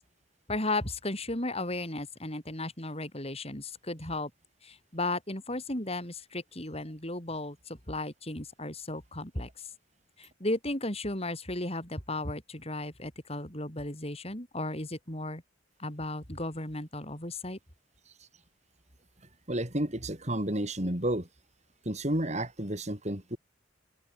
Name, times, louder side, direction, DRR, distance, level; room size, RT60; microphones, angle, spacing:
voice 1, 0.5-4.3 4.6-9.5 10.2-15.4 15.8-17.6, left 2 dB, 30° left, 7.2 m, -35 dB
voice 2, 19.5-21.3 21.8-23.4, right 1 dB, 35° right, 4.8 m, -31 dB
head